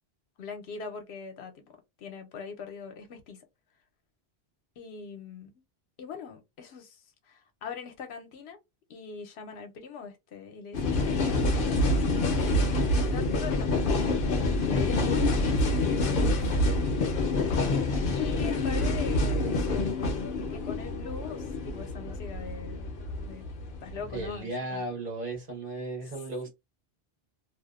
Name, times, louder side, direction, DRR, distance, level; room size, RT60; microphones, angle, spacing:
voice 1, 0.4-1.7 2.0-3.4 4.8-5.5 6.0-8.6 8.9-12.5 13.1-14.0 14.6-15.6 15.9-16.7 17.4-17.6 18.1-19.9 20.5-23.4 23.8-25.0, left 6 dB, 85° left, 0.9 m, -42 dB
sound 1, 10.7-24.3, left 2 dB, 60° left, 0.7 m, -27 dB
voice 2, 24.1-26.5, right 2 dB, 55° right, 1.1 m, -35 dB
2.5 x 2.1 x 2.3 m
omnidirectional pair, 1.1 m